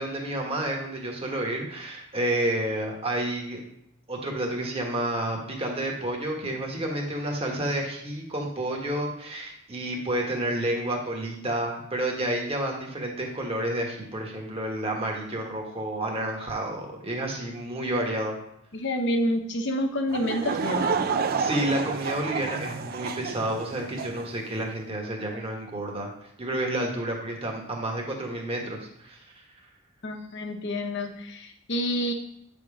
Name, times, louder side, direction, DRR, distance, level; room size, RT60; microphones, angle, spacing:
voice 1, 0.0-3.6 4.1-18.4 21.4-26.1 26.4-29.2, right 1 dB, 30° right, 0 dB, 1.2 m, -30 dB
voice 2, 18.7-21.0 30.0-32.1, equal, 60° left, 5 dB, 0.9 m, -28 dB
Laughter / Crowd, 20.1-24.3, right 5 dB, 45° right, 0.4 m, -30 dB
7.4 x 3.6 x 4.9 m, 0.73 s
head